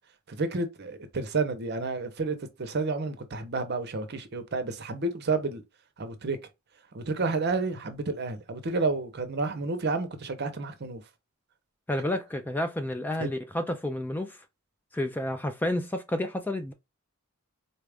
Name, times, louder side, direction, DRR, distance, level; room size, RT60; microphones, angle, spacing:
voice 1, 0.3-5.6 6.0-6.4 6.9-11.0 13.2-13.3, right 3 dB, 55° right, 0.7 m, -30 dB
voice 2, 11.9-14.4 14.9-16.7, left 1 dB, 10° left, 0.3 m, -30 dB
4.1 x 2.4 x 3.3 m
head